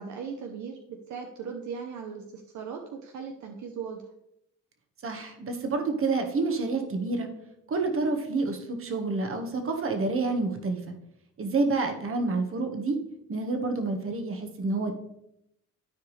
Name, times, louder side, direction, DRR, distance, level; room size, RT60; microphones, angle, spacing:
voice 1, 0.0-4.0, right 6 dB, 70° right, 3 dB, 0.9 m, -38 dB
voice 2, 5.0-7.3 7.7-10.9 11.4-13.0 13.3-14.9, right 3 dB, 45° right, 5 dB, 1.6 m, -28 dB
13.0 x 4.7 x 3.3 m, 0.79 s
cardioid pair, 90°, 30 cm